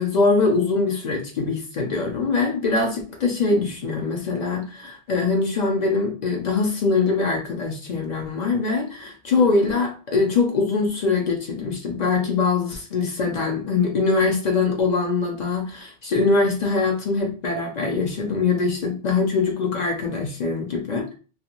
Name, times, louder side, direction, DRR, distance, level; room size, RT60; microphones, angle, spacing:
voice 1, 0.0-21.1, left 4 dB, 55° left, 1 dB, 0.5 m, -23 dB
2.4 x 2.2 x 2.9 m, 0.36 s
omnidirectional pair, 1.1 m